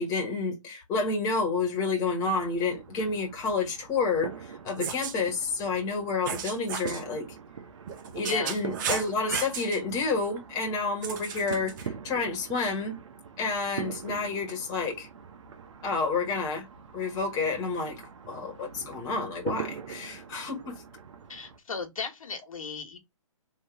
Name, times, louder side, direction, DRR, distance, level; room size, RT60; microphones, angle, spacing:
voice 1, 0.0-7.3 8.1-12.9 13.4-15.1 15.8-16.7 16.9-20.8, left 4 dB, 20° left, 1.5 m, -29 dB
sound 1, 2.2-21.6, right 7 dB, 60° right, 1.0 m, -43 dB
sound 2, 4.7-5.2 6.2-7.0 7.9-9.8 11.0-11.9, right 7 dB, 35° right, 0.9 m, -34 dB
voice 2, 8.2-8.6 21.3-23.0, left 4 dB, 80° left, 1.5 m, -36 dB
3.7 x 2.9 x 4.7 m
hypercardioid pair, 145°, 17 cm